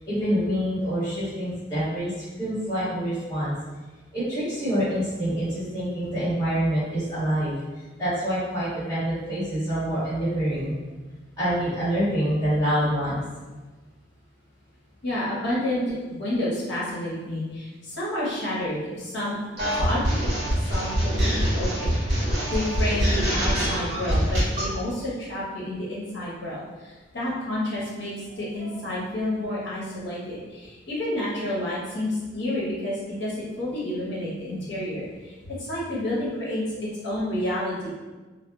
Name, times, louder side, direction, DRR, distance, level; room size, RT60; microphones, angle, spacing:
voice 1, 0.0-3.5 4.1-7.5 8.0-10.8 11.4-13.2 28.5-28.8 31.1-31.3 34.5-34.6, equal, 20° left, -14 dB, 1.5 m, -26 dB
voice 2, 15.0-19.4 19.8-20.3 20.6-37.9, left 1 dB, 70° left, -7 dB, 0.9 m, -30 dB
sound 1, 19.6-24.7, equal, 60° right, 0.9 m, -24 dB
2.7 x 2.3 x 2.3 m, 1.2 s
head